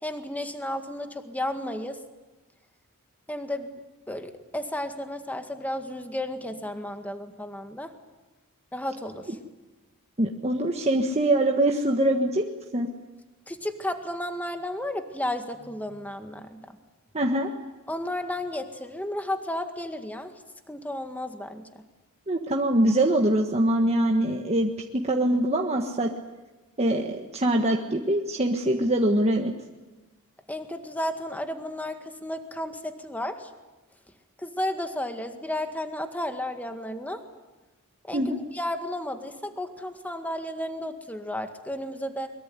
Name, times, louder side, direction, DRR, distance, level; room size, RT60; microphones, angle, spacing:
voice 1, 0.0-2.0 3.3-7.9 8.7-9.4 13.5-16.8 17.9-20.3 20.7-21.8 30.5-33.5 34.4-37.2 38.0-38.2 38.5-42.3, left 1 dB, 5° left, 7 dB, 1.9 m, -33 dB
voice 2, 10.2-12.5 12.7-12.9 17.1-17.5 22.3-26.1 26.8-29.5 38.1-38.4, right 1 dB, 30° right, 2 dB, 1.5 m, -23 dB
23.0 x 22.0 x 9.6 m, 1.2 s
head